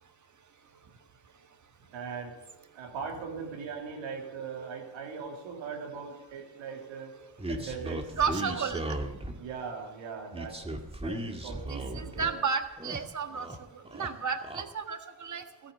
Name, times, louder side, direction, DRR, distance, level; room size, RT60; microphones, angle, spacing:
voice 1, 1.9-2.3 2.7-7.1 7.5-8.1 8.4-8.6 9.4-12.3, right 5 dB, 80° right, 0 dB, 3.1 m, -40 dB
sound 1, 7.4-9.5 10.3-12.3 12.6-13.6 13.8-14.6, right 1 dB, 15° right, 1.9 m, -37 dB
voice 2, 8.2-9.0 11.7-13.5 13.7-15.7, right 6 dB, 40° right, 7 dB, 1.6 m, -33 dB
13.5 x 9.9 x 6.8 m, 0.99 s
supercardioid pair, 60°, 45 cm